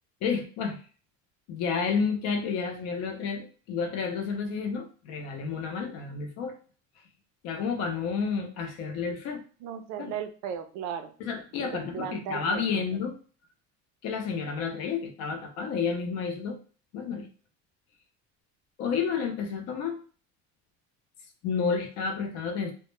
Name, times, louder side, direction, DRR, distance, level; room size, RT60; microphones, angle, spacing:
voice 1, 0.2-0.8 1.5-6.5 7.4-9.4 10.0-10.1 11.2-13.2 14.0-16.6 16.9-17.3 18.8-20.0 21.4-22.7, left 5 dB, 50° left, 5 dB, 0.5 m, -30 dB
voice 2, 9.6-11.1 11.5-12.8, right 8 dB, 65° right, 8 dB, 0.5 m, -36 dB
2.1 x 2.1 x 2.9 m, 0.40 s
cardioid pair, 170°, 33 cm